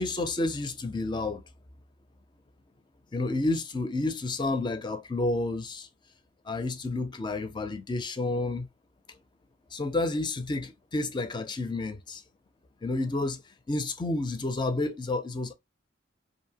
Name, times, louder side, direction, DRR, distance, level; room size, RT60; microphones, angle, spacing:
voice 1, 0.0-1.4 3.1-5.9 6.5-8.7 9.7-12.2 12.8-13.4 13.7-15.5, left 2 dB, 25° left, 0.4 m, -30 dB
2.6 x 2.6 x 2.7 m
head